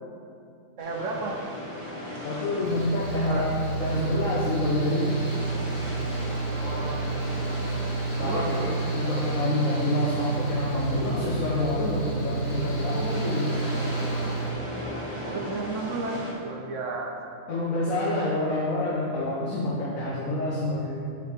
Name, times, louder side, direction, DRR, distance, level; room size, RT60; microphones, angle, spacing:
sound 1, 0.8-16.3, equal, 20° right, 1.4 m, -36 dB
voice 1, 0.8-1.4 3.1-3.5 6.5-7.2 8.1-8.8 9.1-9.2 13.1-13.4 15.3-17.4, right 3 dB, 65° right, 1 dB, 1.1 m, -33 dB
voice 2, 2.2-3.5 3.8-5.1 8.2-13.5 17.5-21.0, left 1 dB, 75° left, -6 dB, 1.5 m, -27 dB
Mechanical fan, 2.6-14.5, right 3 dB, 35° left, 1.0 m, -30 dB
6.8 x 5.6 x 5.2 m, 2.5 s
omnidirectional pair, 1.4 m